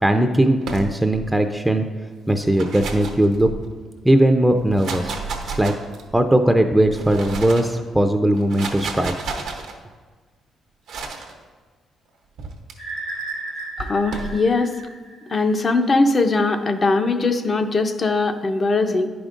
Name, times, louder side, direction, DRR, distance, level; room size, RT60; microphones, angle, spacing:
voice 1, 0.0-1.8 2.3-3.5 4.0-5.1 5.5-5.7 6.1-9.1, right 1 dB, 5° right, 5 dB, 0.4 m, -18 dB
sound 1, 0.6-1.3 2.3-3.8 4.6-6.2 6.8-7.8 8.3-9.7 10.9-11.3 12.4-12.7 13.8-14.4, right 4 dB, 80° right, 0.8 m, -32 dB
sound 2, 12.8-15.6, right 3 dB, 90° left, 1.3 m, -34 dB
voice 2, 13.8-14.8 15.3-19.1, left 3 dB, 40° left, 7 dB, 0.6 m, -20 dB
10.5 x 5.0 x 2.5 m, 1.4 s
supercardioid pair, 65°, 0 cm